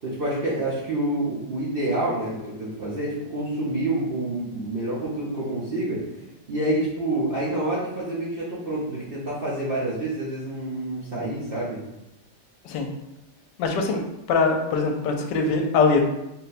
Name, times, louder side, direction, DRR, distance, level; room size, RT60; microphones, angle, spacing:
voice 1, 0.0-6.0 6.5-11.8, right 1 dB, 50° right, -8 dB, 0.6 m, -27 dB
voice 2, 13.6-14.0 14.3-16.1, left 4 dB, 85° left, 3 dB, 1.2 m, -22 dB
3.9 x 2.2 x 4.1 m, 0.91 s
omnidirectional pair, 1.9 m